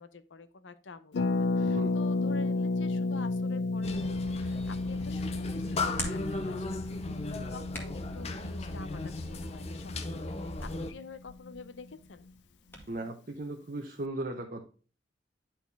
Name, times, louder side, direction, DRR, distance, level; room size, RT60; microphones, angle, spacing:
voice 1, 0.0-12.3, left 4 dB, 80° left, 12 dB, 0.7 m, -48 dB
Harp, 1.1-10.8 11.0-11.1 11.3-11.6, left 3 dB, 65° left, 0.4 m, -32 dB
voice 2, 1.6-1.9 12.9-14.6, right 2 dB, 45° right, 2 dB, 0.9 m, -37 dB
sound 1, 3.8-10.9, left 2 dB, 35° left, 0.7 m, -37 dB
Hands, 4.5-12.9, left 1 dB, 10° left, 1.7 m, -47 dB
10.5 x 4.3 x 3.4 m, 0.37 s
head